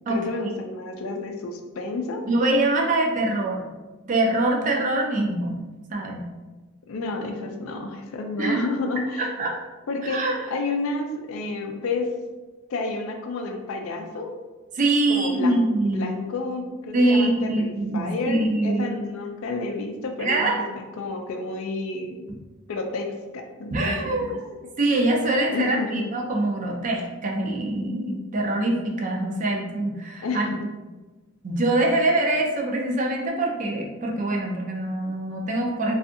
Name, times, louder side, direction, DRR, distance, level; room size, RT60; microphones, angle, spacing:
voice 1, 0.1-2.2 6.9-9.4 9.9-12.1 12.7-14.4 15.1-22.3 22.7-24.4 25.5-26.0 30.2-30.6, left 3 dB, 70° left, 3 dB, 0.4 m, -30 dB
voice 2, 2.3-3.7 4.1-5.6 5.9-6.3 8.4-8.7 9.2-9.5 10.0-10.4 14.7-16.2 16.9-18.9 20.2-20.6 23.7-24.5 24.8-30.5 31.4-35.9, right 2 dB, 35° right, 0 dB, 0.4 m, -24 dB
2.5 x 2.4 x 2.5 m, 1.2 s
head